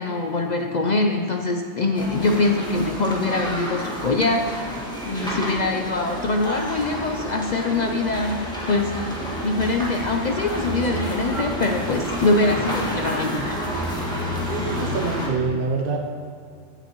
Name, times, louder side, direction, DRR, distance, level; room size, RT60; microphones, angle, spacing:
voice 1, 0.0-4.8 5.1-13.6, left 2 dB, 60° left, 3 dB, 0.4 m, -23 dB
sound 1, 1.9-15.3, equal, 5° left, 1.6 m, -29 dB
voice 2, 14.5-16.0, right 4 dB, 55° right, 3 dB, 0.7 m, -25 dB
15.5 x 6.9 x 3.0 m, 2.4 s
omnidirectional pair, 1.4 m